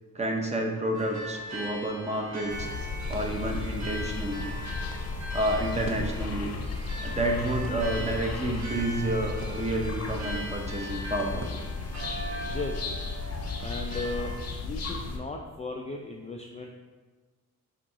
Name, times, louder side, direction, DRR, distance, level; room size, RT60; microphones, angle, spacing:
voice 1, 0.1-2.7 3.1-4.4 5.3-6.5 7.0-11.5, right 1 dB, 20° right, 1 dB, 0.7 m, -30 dB
sound 1, 0.9-14.4, equal, 50° right, 1.2 m, -40 dB
sound 2, 2.5-15.2, left 4 dB, 45° left, 0.7 m, -35 dB
Crackle, 3.1-12.3, right 2 dB, 85° right, 0.7 m, -47 dB
voice 2, 12.4-12.9 13.6-14.3 14.6-16.7, left 2 dB, 20° left, 1 dB, 0.3 m, -36 dB
3.7 x 2.8 x 4.8 m, 1.3 s
cardioid pair, 75°, 36 cm